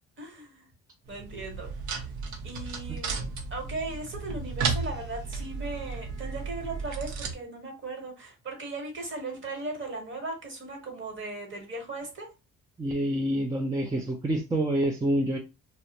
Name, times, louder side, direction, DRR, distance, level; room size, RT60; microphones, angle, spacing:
voice 1, 0.2-0.7 1.1-1.7 2.4-12.3, right 2 dB, 40° right, 2 dB, 1.1 m, -38 dB
sound 1, 1.1-7.3, right 4 dB, 70° right, 0.7 m, -34 dB
voice 2, 12.8-15.4, right 1 dB, 10° right, 0 dB, 0.4 m, -27 dB
2.3 x 2.0 x 2.8 m, 0.27 s
cardioid pair, 90°, 30 cm